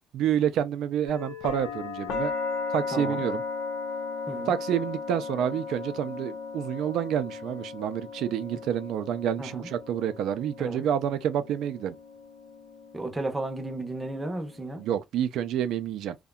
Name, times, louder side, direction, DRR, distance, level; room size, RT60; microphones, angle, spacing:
voice 1, 0.1-2.3 2.7-3.4 4.5-12.0 14.8-16.1, right 9 dB, 70° right, 0.3 m, -28 dB
sound 1, 1.1-14.9, left 4 dB, 90° left, 0.7 m, -37 dB
voice 2, 2.9-3.2 4.3-4.5 9.4-9.7 10.6-10.8 12.9-14.8, right 2 dB, 10° right, 0.6 m, -34 dB
2.7 x 2.1 x 2.3 m
cardioid pair, 120°, 0 cm